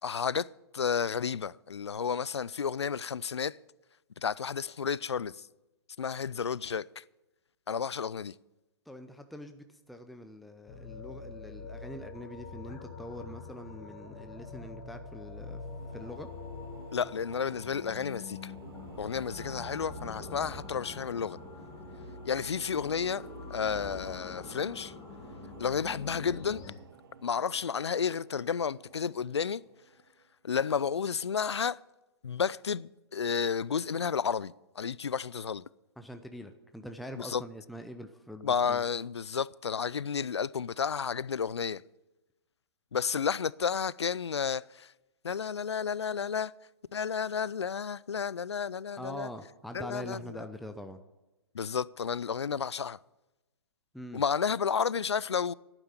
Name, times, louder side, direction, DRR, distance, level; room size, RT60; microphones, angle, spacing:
voice 1, 0.0-0.5 0.7-3.6 4.2-5.5 6.0-7.0 7.7-8.3 16.9-18.5 19.0-21.4 22.2-24.9 25.6-26.6 27.2-29.6 30.4-31.8 32.2-35.6 37.2-37.4 38.4-41.8 42.9-44.9 45.2-46.5 46.9-49.3 49.7-50.4 51.5-53.0 54.1-55.5, left 6 dB, 85° left, 0.4 m, -32 dB
voice 2, 8.9-15.6 15.9-16.3 36.0-38.8 49.0-51.0 53.9-54.2, equal, ahead, 0.6 m, -44 dB
sound 1, 10.7-26.7, left 4 dB, 25° left, 2.1 m, -45 dB
sound 2, 15.0-30.3, right 5 dB, 60° right, 1.6 m, -53 dB
11.5 x 9.0 x 8.8 m
hypercardioid pair, 125°, 14 cm